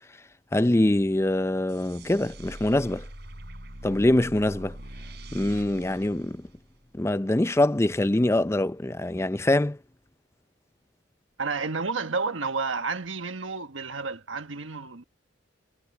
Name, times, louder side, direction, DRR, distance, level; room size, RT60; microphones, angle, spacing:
voice 1, 0.5-3.1 3.8-4.8 5.3-6.5 7.0-9.8, left 1 dB, 15° left, 0.5 m, -24 dB
sound 1, 1.7-7.0, right 1 dB, 55° right, 6.4 m, -43 dB
voice 2, 11.4-15.0, right 4 dB, 80° right, 1.5 m, -31 dB
head